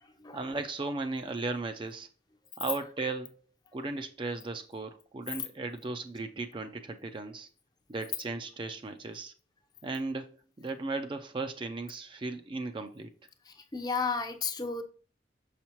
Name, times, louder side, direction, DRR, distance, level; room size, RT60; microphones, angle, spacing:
voice 1, 0.3-2.1 2.6-3.4 3.7-7.5 7.9-9.3 9.8-10.3 10.6-13.1, right 3 dB, 30° right, 0.4 m, -36 dB
voice 2, 13.7-14.8, left 4 dB, 25° left, 0.6 m, -32 dB
6.3 x 5.8 x 3.0 m
head